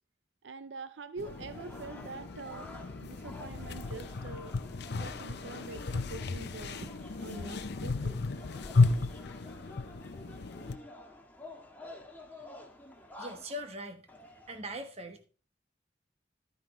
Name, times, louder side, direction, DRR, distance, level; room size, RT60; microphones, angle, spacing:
voice 1, 0.4-4.5 4.9-6.9 7.2-8.2, right 3 dB, 80° right, 12 dB, 0.6 m, -45 dB
sound 1, 1.2-10.8, left 3 dB, 65° left, 0.6 m, -33 dB
sound 2, 1.2-13.6 14.1-14.6, left 1 dB, 10° left, 1.5 m, -50 dB
voice 2, 13.2-14.1 14.5-15.3, equal, 35° right, 7 dB, 1.2 m, -41 dB
12.0 x 9.2 x 3.2 m, 0.37 s
head